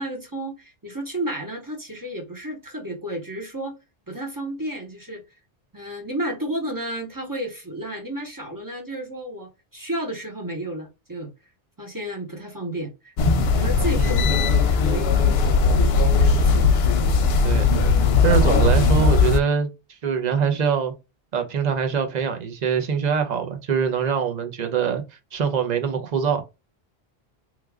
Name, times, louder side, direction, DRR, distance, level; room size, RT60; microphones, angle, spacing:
voice 1, 0.0-3.8 4.1-5.2 5.7-11.3 11.8-13.1 13.5-16.7 18.2-18.6, right 1 dB, 20° right, 0.8 m, -32 dB
sound 1, 13.2-19.4, left 4 dB, 75° left, 0.8 m, -18 dB
voice 2, 18.2-19.7 20.0-20.9 21.3-25.0 25.3-26.4, right 7 dB, 50° right, 0.7 m, -23 dB
3.2 x 2.3 x 3.4 m
omnidirectional pair, 1.0 m